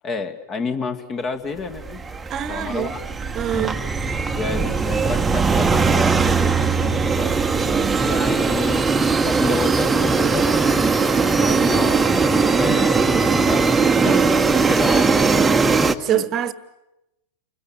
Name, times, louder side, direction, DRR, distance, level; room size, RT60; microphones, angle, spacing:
voice 1, 0.0-2.0 2.5-3.0 3.5-3.7 4.3-7.4 8.0-10.9 11.2-12.9 13.2-15.8 16.1-16.2, left 4 dB, 25° left, 2.1 m, -30 dB
sound 1, 1.8-15.9, right 4 dB, 10° right, 1.3 m, -19 dB
voice 2, 2.3-3.0 3.3-3.8 7.6-8.0 11.1-11.2 12.6-13.3 14.0-14.5 16.0-16.5, right 10 dB, 30° right, 1.5 m, -26 dB
29.5 x 22.0 x 9.0 m
figure-of-eight pair, 90°, 0 cm